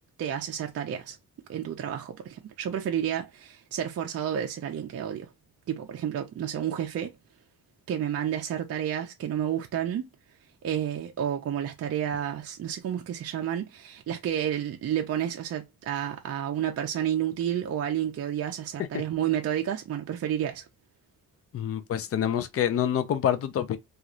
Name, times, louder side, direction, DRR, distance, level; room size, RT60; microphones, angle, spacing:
voice 1, 0.2-1.2 1.5-5.3 5.7-7.2 7.9-10.1 10.6-20.7, right 10 dB, 45° right, 0.4 m, -30 dB
voice 2, 21.5-23.8, left 10 dB, 45° left, 0.4 m, -27 dB
3.0 x 2.4 x 2.4 m
wide cardioid pair, 165°, 35 cm